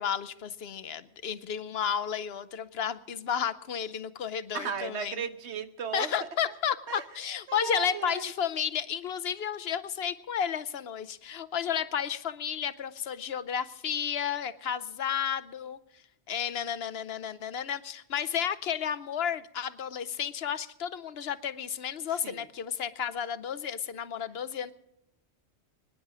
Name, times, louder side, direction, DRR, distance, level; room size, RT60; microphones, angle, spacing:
voice 1, 0.0-5.2 5.9-15.8 16.3-24.7, left 8 dB, 65° left, 14 dB, 1.0 m, -32 dB
voice 2, 4.5-6.3 6.9-7.0 7.5-8.3 22.2-22.4, right 6 dB, 85° right, 10 dB, 1.3 m, -35 dB
24.5 x 10.0 x 4.9 m, 0.82 s
omnidirectional pair, 1.1 m